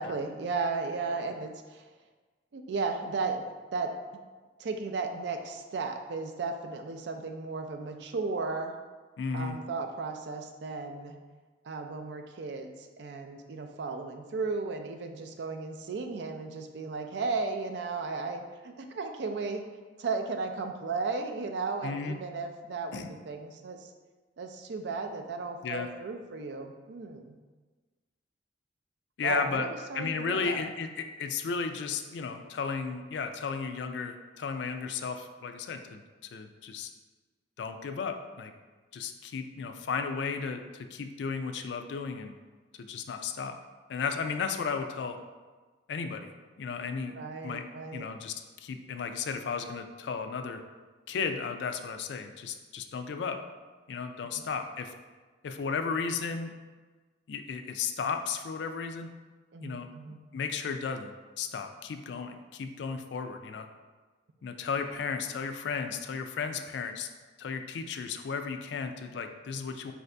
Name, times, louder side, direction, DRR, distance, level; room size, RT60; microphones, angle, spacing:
voice 1, 0.0-1.8 2.5-3.4 3.7-3.9 4.6-8.8 9.3-11.2 11.6-19.6 20.0-23.9 24.4-27.4 29.2-30.6 47.2-48.1 59.5-60.2, right 4 dB, 65° right, 5 dB, 0.4 m, -35 dB
voice 2, 9.2-9.6 21.8-22.2 22.9-23.1 25.6-25.9 29.2-29.7 29.9-36.0 36.3-36.9 37.6-38.5 38.9-42.3 42.8-43.6 43.9-45.2 45.9-46.3 46.6-47.1 47.4-47.6 47.9-50.6 51.1-53.4 53.9-54.9 55.4-56.5 57.3-59.1 59.6-59.9 60.3-61.1 61.4-63.7 64.4-67.1 67.4-69.9, left 5 dB, 70° left, 7 dB, 0.3 m, -34 dB
4.8 x 2.6 x 3.3 m, 1.3 s
head